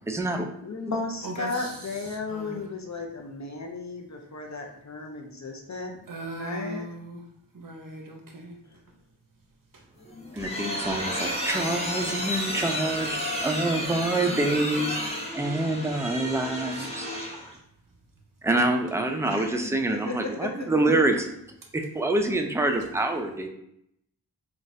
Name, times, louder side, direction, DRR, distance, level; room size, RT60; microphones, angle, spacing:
voice 1, 0.1-0.5 10.3-17.1 18.4-21.3 21.7-23.5, right 2 dB, 5° right, 4 dB, 0.4 m, -26 dB
voice 2, 0.6-6.0 6.4-6.9 19.2-20.7, left 3 dB, 45° left, 2 dB, 0.6 m, -35 dB
voice 3, 1.2-2.7 6.1-7.2 7.5-8.6 9.7-9.8 10.2-10.7 16.7-16.9 21.6-21.7, right 1 dB, 50° right, 2 dB, 0.8 m, -39 dB
sound 1, 10.0-17.5, equal, 15° left, 0.9 m, -32 dB
3.9 x 2.3 x 2.6 m, 0.75 s
wide cardioid pair, 40°, 42 cm